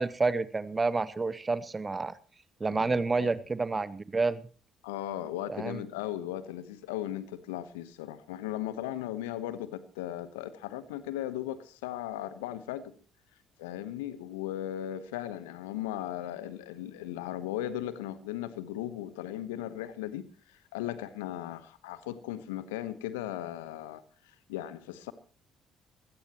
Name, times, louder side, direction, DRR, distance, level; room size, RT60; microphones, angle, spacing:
voice 1, 0.0-2.1 2.6-4.4 5.5-5.8, right 3 dB, 25° right, 16 dB, 1.0 m, -29 dB
voice 2, 2.6-3.3 4.8-12.9 13.6-24.0 24.5-25.1, left 12 dB, 75° left, 15 dB, 1.1 m, -37 dB
21.5 x 17.0 x 3.0 m, 0.38 s
figure-of-eight pair, 50°, 0 cm